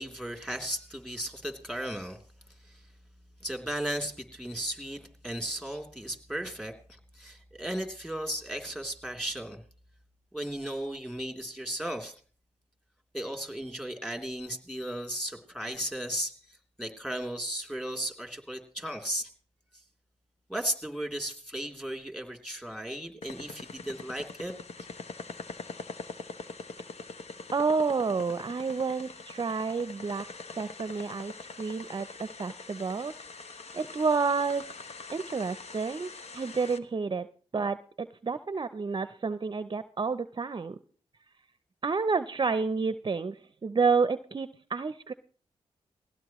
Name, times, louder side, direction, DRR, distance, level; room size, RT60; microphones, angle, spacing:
voice 1, 0.0-2.2 2.7-2.8 3.4-9.6 10.3-12.1 13.1-19.3 20.5-24.5, right 1 dB, 5° left, 4 dB, 3.2 m, -35 dB
sound 1, 23.2-36.8, left 4 dB, 70° left, 1.1 m, -44 dB
voice 2, 27.5-30.3 30.5-31.3 31.6-33.1 33.7-34.7 35.1-37.3 37.5-40.8 41.8-45.1, right 4 dB, 40° right, 14 dB, 0.6 m, -30 dB
20.0 x 16.0 x 3.1 m, 0.43 s
cardioid pair, 50°, 11 cm